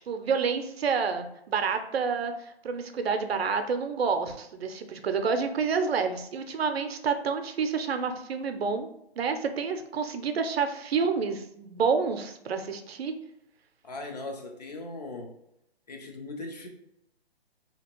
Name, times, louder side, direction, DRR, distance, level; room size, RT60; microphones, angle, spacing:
voice 1, 0.1-8.9 9.2-13.1, right 5 dB, 75° right, 7 dB, 0.5 m, -29 dB
voice 2, 13.8-15.3 15.9-16.7, left 2 dB, 40° left, 3 dB, 0.5 m, -39 dB
2.8 x 2.8 x 3.0 m, 0.78 s
hypercardioid pair, 160°, 32 cm